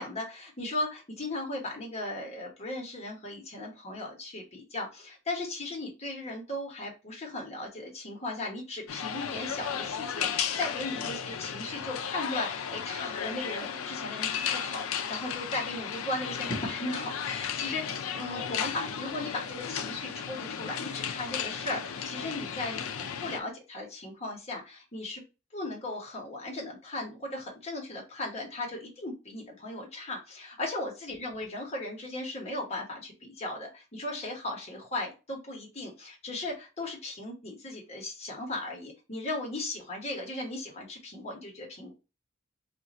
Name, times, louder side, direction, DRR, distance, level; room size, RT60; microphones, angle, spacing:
voice 1, 0.0-25.2 25.5-41.9, left 2 dB, 30° left, -1 dB, 1.2 m, -37 dB
sound 1, 8.9-23.4, left 7 dB, 80° left, 0.4 m, -34 dB
2.5 x 2.5 x 4.1 m, 0.29 s
head